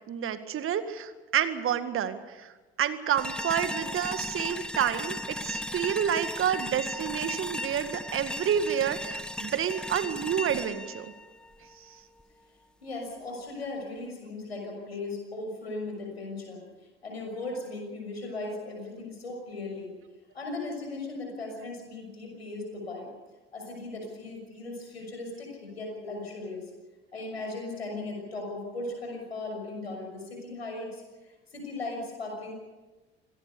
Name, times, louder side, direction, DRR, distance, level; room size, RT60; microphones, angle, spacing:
voice 1, 0.1-2.5 2.8-11.1, right 9 dB, 45° right, 10 dB, 1.9 m, -29 dB
sound 1, 3.2-12.2, left 1 dB, 5° left, 1.1 m, -36 dB
voice 2, 12.8-16.6 17.0-19.9 20.3-23.1 23.5-26.7 27.1-32.5, left 2 dB, 85° left, 2 dB, 6.3 m, -37 dB
26.5 x 18.0 x 6.9 m, 1.2 s
figure-of-eight pair, 60°, 31 cm